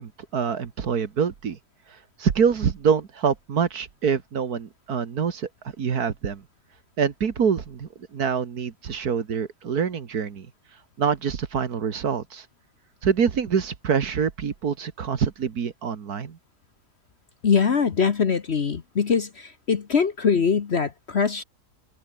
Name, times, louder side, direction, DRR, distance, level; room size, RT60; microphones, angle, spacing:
voice 1, 0.0-1.6 2.2-5.5 5.8-6.4 7.0-10.5 11.0-12.4 13.0-16.4, right 6 dB, 60° right, 2.0 m, -25 dB
voice 2, 17.4-21.4, left 6 dB, 45° left, 1.2 m, -22 dB
omnidirectional pair, 1.8 m